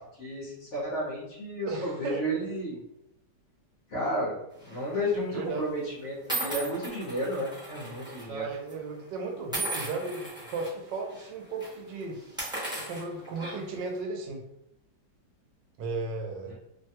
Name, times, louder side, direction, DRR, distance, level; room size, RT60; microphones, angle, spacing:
voice 1, 0.2-2.8 3.9-4.4 4.7-8.4 16.5-16.6, equal, 55° left, -6 dB, 0.9 m, -32 dB
voice 2, 1.7-2.5 5.3-5.6 8.3-12.2 12.9-14.4 15.8-16.5, right 3 dB, 80° right, 2 dB, 1.3 m, -35 dB
sound 1, 4.6-4.9 5.7-5.8 6.3-8.2 8.5-8.7 9.5-10.7 11.1-11.3 11.6-11.7 12.2-13.8, right 2 dB, 5° right, 0.5 m, -36 dB
3.1 x 2.2 x 2.8 m, 0.84 s
omnidirectional pair, 1.9 m